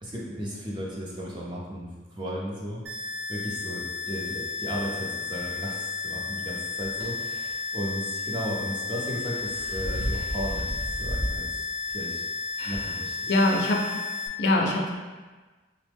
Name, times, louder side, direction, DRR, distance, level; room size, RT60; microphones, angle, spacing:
voice 1, 0.0-2.8 3.3-11.7 11.9-12.2 12.6-13.3, equal, 25° right, -4 dB, 0.5 m, -35 dB
sound 1, 2.9-14.3, left 4 dB, 70° right, 0.5 m, -33 dB
sound 2, 7.0-7.1 9.0-11.4 11.9-12.0 12.7-12.8, equal, 85° right, 1.1 m, -32 dB
voice 2, 12.6-12.9 13.3-13.8 14.4-15.0, left 1 dB, 55° left, 0 dB, 0.4 m, -24 dB
3.3 x 2.0 x 3.4 m, 1.3 s
head